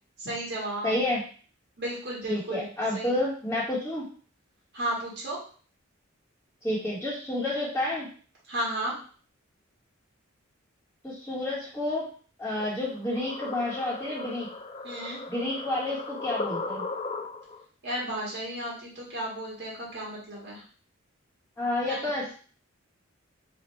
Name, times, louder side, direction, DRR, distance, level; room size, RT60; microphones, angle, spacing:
voice 1, 0.2-0.9 1.8-2.6 2.9-3.1 4.7-5.4 8.5-8.9 14.8-15.2 17.8-20.6 21.9-22.1, right 1 dB, 50° right, -4 dB, 1.7 m, -33 dB
voice 2, 0.8-1.2 2.3-4.0 6.6-8.1 11.0-12.0 12.4-14.5 15.3-16.8 21.6-22.3, left 1 dB, 10° left, -9 dB, 1.2 m, -30 dB
sound 1, 12.6-17.6, left 3 dB, 30° left, 0.4 m, -37 dB
4.3 x 2.4 x 4.3 m, 0.42 s
head